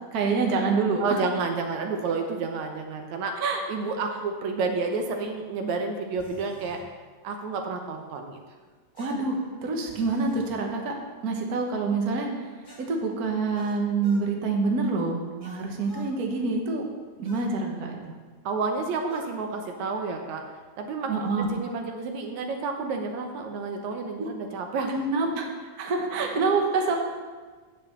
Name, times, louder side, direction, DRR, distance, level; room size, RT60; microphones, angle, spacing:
voice 1, 0.1-1.0 3.4-3.6 9.0-10.9 11.2-16.8 17.2-18.1 21.1-21.5 24.2-24.3 24.9-26.9, right 4 dB, 50° right, 1 dB, 1.0 m, -27 dB
voice 2, 1.0-3.4 3.7-6.8 7.2-8.4 18.5-20.4 20.8-24.9, right 4 dB, 70° right, 4 dB, 2.0 m, -30 dB
sound 1, 6.2-6.8 9.0-10.5 12.6-14.3 15.4-16.1 17.2-17.5 19.1-19.4, equal, 90° left, 0.4 m, -50 dB
9.5 x 7.0 x 7.4 m, 1.4 s
omnidirectional pair, 3.7 m